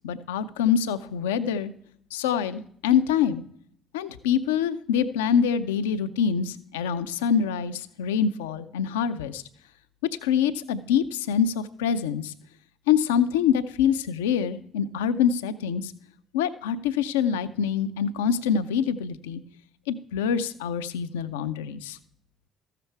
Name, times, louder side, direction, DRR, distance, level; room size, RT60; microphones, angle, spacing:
voice 1, 0.0-1.7 2.1-3.4 3.9-9.4 10.2-12.3 12.9-15.9 16.3-19.4 19.9-22.0, left 8 dB, 85° left, 11 dB, 0.5 m, -25 dB
14.0 x 6.8 x 4.5 m, 0.65 s
hypercardioid pair, 55°, 0 cm